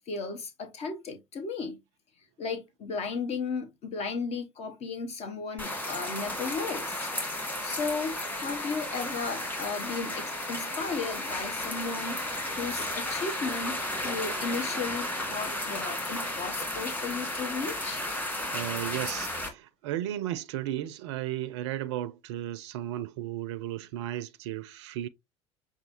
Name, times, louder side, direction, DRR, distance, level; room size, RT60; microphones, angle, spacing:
voice 1, 0.0-1.8 2.4-7.1 7.4-18.0, left 4 dB, 45° left, 0.8 m, -35 dB
sound 1, 5.6-19.5, left 1 dB, 10° left, 1.7 m, -33 dB
voice 2, 18.5-25.1, right 13 dB, 70° right, 0.4 m, -34 dB
6.3 x 2.3 x 2.9 m
figure-of-eight pair, 65°, 15 cm